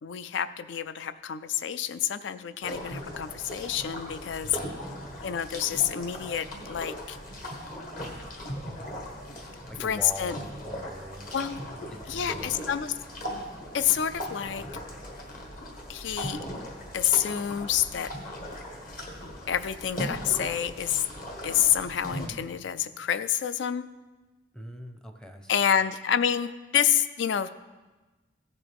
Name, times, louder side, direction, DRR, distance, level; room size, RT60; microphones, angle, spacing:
voice 1, 0.0-4.6 5.2-7.2 9.8-10.3 11.3-11.6 12.1-12.9 13.7-14.6 15.9-16.4 16.9-18.1 19.5-21.0 21.4-23.8 25.5-27.5, left 9 dB, 75° left, 14 dB, 0.4 m, -28 dB
sound 1, 2.6-22.3, equal, 45° left, 1.5 m, -39 dB
voice 2, 4.4-4.8 9.7-11.3 11.6-12.6 24.5-25.5, equal, 5° left, 5 dB, 0.6 m, -43 dB
15.5 x 6.9 x 3.5 m, 1.2 s
head